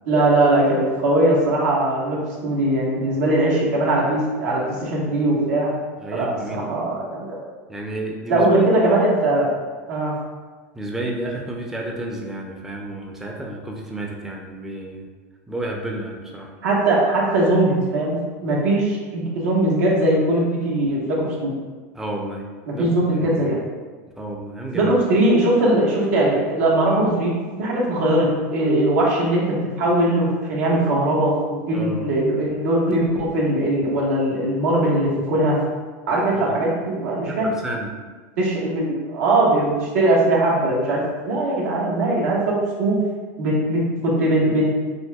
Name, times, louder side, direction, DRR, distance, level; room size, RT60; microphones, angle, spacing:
voice 1, 0.0-2.2 2.4-5.7 6.1-7.4 8.3-9.5 9.9-10.1 16.6-18.2 18.4-21.5 22.8-23.6 24.7-35.6 36.1-37.5 38.4-43.0 43.4-44.7, right 1 dB, 80° right, -4 dB, 1.3 m, -20 dB
voice 2, 6.0-6.9 7.7-8.7 10.7-15.1 15.5-16.5 21.9-22.4 22.7-22.9 23.2-23.4 24.2-24.9 31.7-32.1 36.3-36.7 37.3-37.9, right 1 dB, 5° right, 0 dB, 0.5 m, -31 dB
6.0 x 2.8 x 2.3 m, 1.4 s
supercardioid pair, 125°, 8 cm